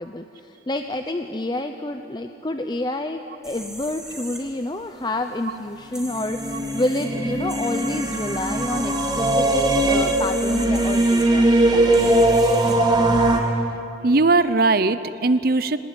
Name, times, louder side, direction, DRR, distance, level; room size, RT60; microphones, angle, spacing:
voice 1, 0.0-12.8, left 1 dB, 25° left, 6 dB, 0.7 m, -29 dB
sound 1, 3.4-13.4, right 1 dB, 5° right, 2.8 m, -39 dB
sound 2, 6.1-13.4, right 1 dB, 25° right, 2.2 m, -20 dB
voice 2, 14.0-15.8, right 3 dB, 55° right, 13 dB, 0.8 m, -19 dB
23.5 x 19.0 x 9.7 m, 2.8 s
head